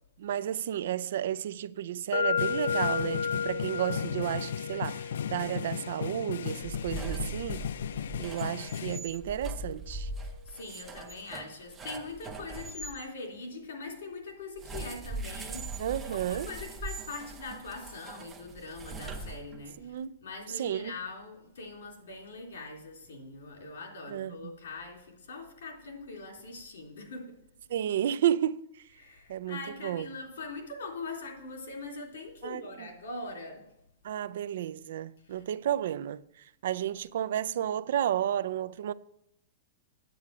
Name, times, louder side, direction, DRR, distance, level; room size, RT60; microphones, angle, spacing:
voice 1, 0.2-7.6 8.2-10.1 15.8-16.5 19.8-20.2 20.5-20.9 24.1-24.5 27.7-28.7 29.3-30.1 32.4-32.9 34.0-36.2 36.6-38.9, right 11 dB, 55° right, 0.4 m, -32 dB
sound 1, 2.1-10.0, left 6 dB, 50° left, 1.0 m, -35 dB
sound 2, 2.4-9.0, left 8 dB, 65° left, 0.3 m, -36 dB
sound 3, 6.6-13.0 14.6-19.8, right 2 dB, 10° right, 0.6 m, -41 dB
voice 2, 7.1-7.5 10.2-15.7 16.0-27.4 29.0-33.6 35.3-35.4, left 3 dB, 85° left, 3.5 m, -42 dB
9.2 x 8.4 x 4.8 m
supercardioid pair, 180°, 0 cm